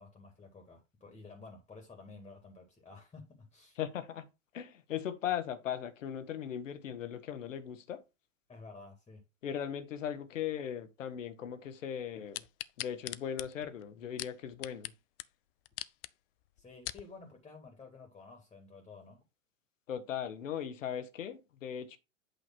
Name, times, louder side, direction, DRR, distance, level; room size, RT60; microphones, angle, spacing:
voice 1, 0.0-3.8 8.5-9.2 16.6-19.2, left 3 dB, 15° left, 1.9 m, -52 dB
voice 2, 3.8-4.3 4.5-8.0 9.4-12.4 12.8-14.9 19.9-22.0, left 9 dB, 70° left, 1.3 m, -38 dB
sound 1, 12.3-14.9 15.2-15.3 15.7-16.1 16.6-17.1 17.7-17.8, left 16 dB, 45° left, 0.5 m, -41 dB
8.4 x 3.0 x 5.9 m
hypercardioid pair, 105°, 39 cm